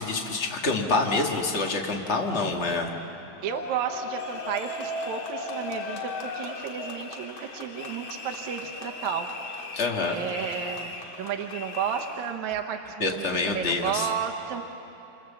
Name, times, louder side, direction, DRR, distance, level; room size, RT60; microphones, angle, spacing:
voice 1, 0.0-2.9 9.7-10.2 13.0-14.1, left 3 dB, 70° left, 1 dB, 0.6 m, -26 dB
sound 1, 3.4-12.3, left 3 dB, 50° left, 2.3 m, -37 dB
voice 2, 3.4-9.3 10.1-14.6, right 8 dB, 70° right, 4 dB, 2.1 m, -32 dB
27.5 x 27.0 x 7.3 m, 2.9 s
omnidirectional pair, 4.1 m